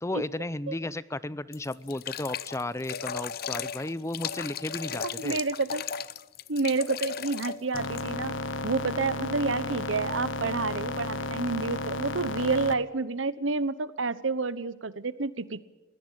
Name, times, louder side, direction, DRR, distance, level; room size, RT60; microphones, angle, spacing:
voice 1, 0.0-5.4, left 1 dB, 15° left, 17 dB, 0.6 m, -34 dB
sound 1, 1.5-8.1, left 7 dB, 55° left, 0.7 m, -36 dB
voice 2, 5.0-5.8 6.5-8.3 8.6-15.6, right 3 dB, 90° right, 15 dB, 1.1 m, -29 dB
sound 2, 7.7-12.7, left 2 dB, 75° left, 1.3 m, -33 dB
21.5 x 17.0 x 8.9 m, 1.2 s
head